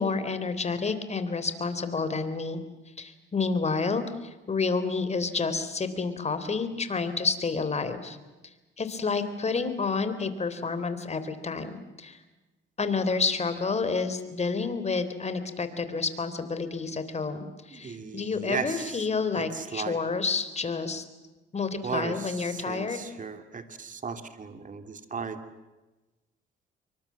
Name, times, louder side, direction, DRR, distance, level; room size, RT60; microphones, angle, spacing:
voice 1, 0.0-2.6 3.0-8.2 8.8-12.2 12.8-17.4 17.7-21.0 21.5-23.1, left 4 dB, 35° left, 11 dB, 3.6 m, -29 dB
voice 2, 17.7-19.0 19.3-20.0 21.8-25.4, right 5 dB, 40° right, 8 dB, 2.9 m, -36 dB
26.5 x 24.0 x 7.5 m, 1.1 s
cardioid pair, 90°, 20 cm